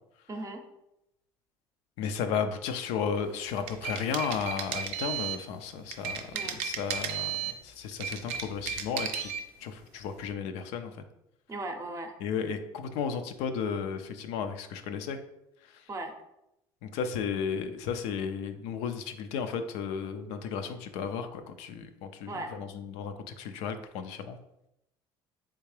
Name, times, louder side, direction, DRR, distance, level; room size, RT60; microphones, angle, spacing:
voice 1, 0.3-0.6 6.3-6.6 11.5-12.1 15.9-16.1 22.3-22.5, right 2 dB, 30° right, 5 dB, 0.6 m, -37 dB
voice 2, 2.0-6.2 6.5-7.4 7.6-9.3 9.6-10.9 12.2-15.2 16.8-24.4, left 6 dB, 75° left, 8 dB, 0.4 m, -34 dB
sound 1, 3.5-5.4 5.9-7.6 7.9-9.4, right 8 dB, 80° right, 0.4 m, -34 dB
3.4 x 2.8 x 3.2 m, 0.84 s
supercardioid pair, 80°, 11 cm